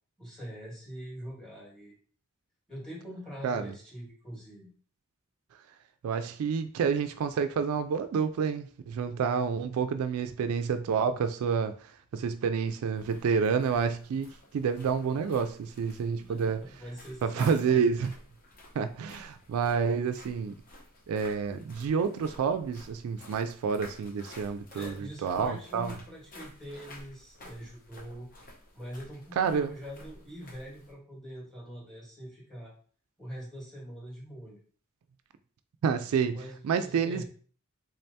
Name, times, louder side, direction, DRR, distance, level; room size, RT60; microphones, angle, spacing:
voice 1, 0.2-1.9 2.7-4.7 16.2-17.8 24.7-28.3 28.7-32.7 33.2-34.6 36.3-37.2, equal, 5° left, -4 dB, 1.8 m, -43 dB
voice 2, 3.4-3.7 6.0-11.7 12.1-16.6 17.2-18.1 18.8-20.5 21.1-25.9 29.4-29.7 35.8-36.4 36.6-37.2, right 6 dB, 75° right, 10 dB, 0.3 m, -29 dB
sound 1, 12.9-30.9, left 1 dB, 40° left, 0.9 m, -52 dB
3.7 x 3.3 x 2.7 m, 0.43 s
head